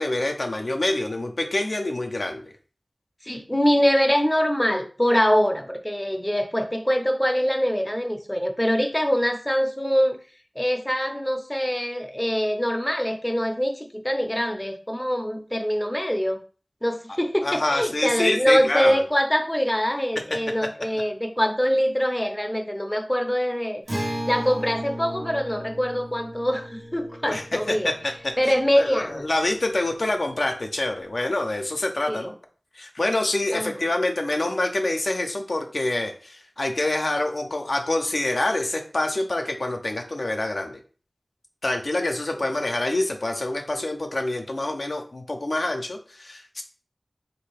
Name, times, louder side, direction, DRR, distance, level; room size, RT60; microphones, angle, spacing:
voice 1, 0.0-2.5 17.4-19.0 20.2-20.3 27.2-28.3 28.8-32.3 32.7-40.8 41.6-46.6, left 2 dB, 70° left, 4 dB, 0.5 m, -26 dB
voice 2, 3.2-10.2 10.6-16.4 16.8-23.8 24.1-27.9 28.4-29.3 32.1-32.3 33.5-33.8, equal, 15° left, 4 dB, 0.5 m, -24 dB
Acoustic guitar, 23.9-29.4, equal, 80° right, 1.0 m, -35 dB
3.2 x 2.6 x 3.3 m, 0.39 s
wide cardioid pair, 45°, 0 cm